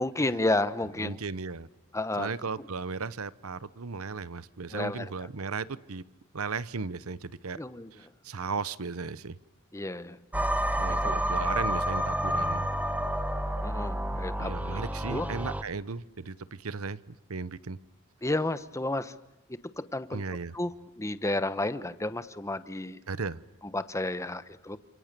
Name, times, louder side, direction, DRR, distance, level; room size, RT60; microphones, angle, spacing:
voice 1, 0.0-1.2 1.9-2.3 4.7-5.1 7.5-7.9 9.7-10.2 11.0-11.2 13.6-14.8 15.1-15.3 18.2-19.2 19.5-20.2 20.5-23.0 23.7-24.8, left 2 dB, 15° left, 13 dB, 1.0 m, -31 dB
voice 2, 1.0-1.7 2.2-6.0 6.3-7.6 7.9-9.4 10.8-12.7 14.1-17.8 20.1-20.6 23.1-23.4, right 4 dB, 80° right, 17 dB, 0.9 m, -36 dB
sound 1, 10.3-15.6, equal, 5° right, 1.2 m, -29 dB
30.0 x 27.5 x 6.8 m, 0.95 s
head